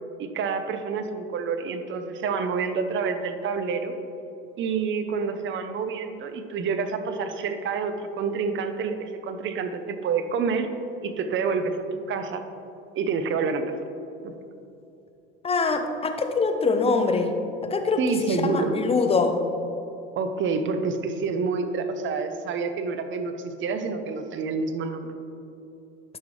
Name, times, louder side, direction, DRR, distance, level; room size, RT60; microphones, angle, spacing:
voice 1, 0.2-3.9 4.6-10.7 11.0-11.8 12.1-12.4 13.0-13.6 14.2-14.3 18.0-18.8 20.1-25.1, right 5 dB, 35° right, 8 dB, 0.8 m, -28 dB
voice 2, 15.4-17.3 17.7-19.4, left 4 dB, 20° left, 5 dB, 0.8 m, -24 dB
11.0 x 6.0 x 3.2 m, 2.9 s
hypercardioid pair, 95°, 32 cm